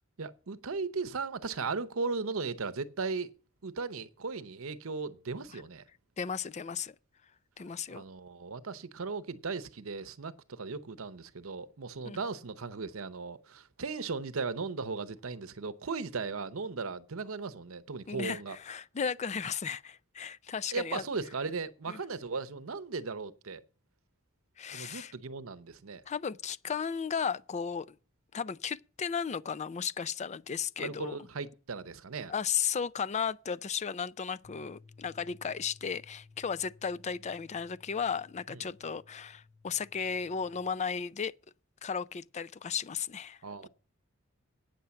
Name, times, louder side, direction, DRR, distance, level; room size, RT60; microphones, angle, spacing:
voice 1, 0.2-3.3 3.6-5.8 7.9-18.6 20.7-23.6 24.7-26.0 30.8-32.3 38.5-38.7 43.4-43.7, right 4 dB, 75° right, 0.8 m, -37 dB
voice 2, 6.2-7.0 7.6-8.0 12.0-12.2 18.1-21.0 21.9-22.0 24.6-25.1 26.1-28.0 28.3-31.2 32.3-41.3 41.8-43.4, left 6 dB, 35° left, 0.4 m, -35 dB
sound 1, 34.4-40.7, left 3 dB, 85° left, 4.7 m, -58 dB
9.0 x 7.0 x 7.6 m
head